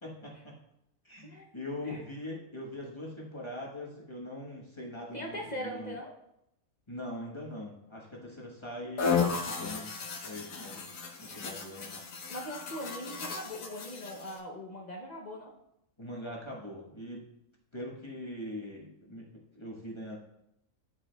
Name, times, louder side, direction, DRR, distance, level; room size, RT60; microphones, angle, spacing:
voice 1, 0.0-0.6 1.0-5.9 6.9-10.0 10.2-10.9 11.2-12.0 16.0-17.3 17.7-20.2, left 1 dB, 20° left, -3 dB, 0.9 m, -42 dB
voice 2, 5.1-6.1 10.5-10.8 12.3-15.5, equal, 50° left, 0 dB, 0.5 m, -41 dB
sound 1, 9.0-14.4, left 5 dB, 65° left, 1.2 m, -34 dB
11.0 x 4.6 x 2.2 m, 0.81 s
omnidirectional pair, 1.6 m